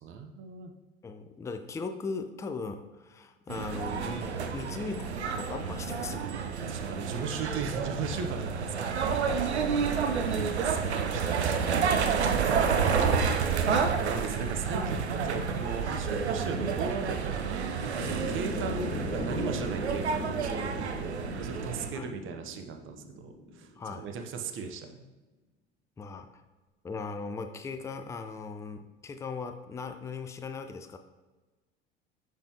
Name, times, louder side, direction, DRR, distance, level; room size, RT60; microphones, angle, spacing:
voice 1, 0.0-0.7 6.7-9.0 10.3-11.7 14.0-23.7 24.0-25.1, right 5 dB, 40° right, 5 dB, 0.7 m, -37 dB
voice 2, 1.0-6.4 9.6-10.0 12.6-13.0 21.9-22.1 23.8-24.1 26.0-26.3 26.8-31.0, left 4 dB, 10° left, 8 dB, 0.4 m, -39 dB
sound 1, 3.5-21.9, right 6 dB, 90° right, 0.5 m, -29 dB
sound 2, 18.0-24.1, left 1 dB, 35° left, 1.3 m, -39 dB
6.4 x 5.2 x 2.8 m, 1.2 s
figure-of-eight pair, 70°, 32 cm